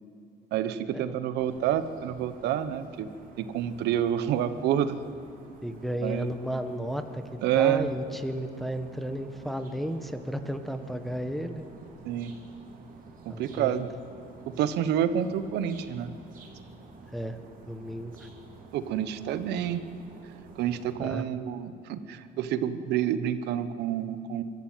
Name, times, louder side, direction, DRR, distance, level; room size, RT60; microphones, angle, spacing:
voice 1, 0.5-3.1 3.4-5.0 6.0-6.3 7.4-7.9 12.0-12.3 13.2-13.9 14.5-16.1 18.7-19.8 20.6-24.4, right 10 dB, 80° right, 12 dB, 1.2 m, -28 dB
sound 1, 1.4-20.9, right 4 dB, 55° right, 3.4 m, -51 dB
voice 2, 5.6-7.2 7.6-11.6 13.3-13.8 17.1-17.4 17.7-18.1 21.0-21.3, equal, ahead, 7 dB, 1.4 m, -33 dB
23.0 x 13.5 x 9.2 m, 2.7 s
cardioid pair, 110°, 17 cm